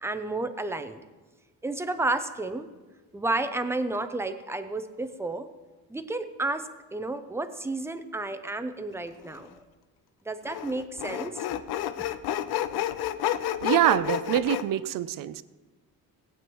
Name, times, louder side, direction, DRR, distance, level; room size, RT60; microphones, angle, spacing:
voice 1, 0.0-1.0 1.6-2.7 3.1-5.5 5.9-9.6 10.3-11.4, right 2 dB, 5° right, 0.5 m, -31 dB
Sawing, 9.2-9.4 10.4-14.6, left 12 dB, 85° left, 0.6 m, -30 dB
voice 2, 13.6-15.4, right 12 dB, 60° right, 0.5 m, -25 dB
18.5 x 8.7 x 3.1 m
cardioid pair, 145°, 37 cm